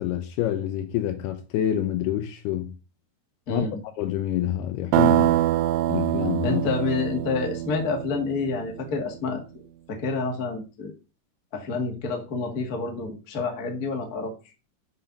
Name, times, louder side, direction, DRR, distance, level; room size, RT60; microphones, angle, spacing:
voice 1, 0.0-2.8 3.5-3.7 4.0-5.4 5.9-6.6, left 12 dB, 80° left, 2.5 m, -27 dB
voice 2, 3.5-3.8 6.4-9.4 9.9-10.9 11.5-14.3, left 4 dB, 45° left, 1.1 m, -28 dB
sound 1, 4.9-8.7, right 13 dB, 85° right, 2.8 m, -24 dB
7.9 x 5.6 x 5.2 m
omnidirectional pair, 5.1 m